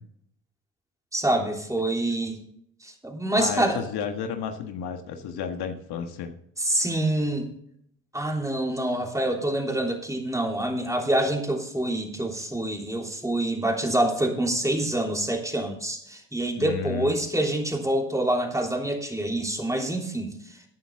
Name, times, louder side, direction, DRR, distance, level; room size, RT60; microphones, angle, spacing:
voice 1, 1.1-2.4 2.8-3.8 6.6-7.5 8.1-20.3, right 1 dB, 10° right, 1 dB, 3.2 m, -26 dB
voice 2, 3.4-6.3 16.6-17.2, left 7 dB, 70° left, 6 dB, 1.6 m, -32 dB
14.0 x 9.1 x 3.7 m, 0.68 s
supercardioid pair, 70°, 41 cm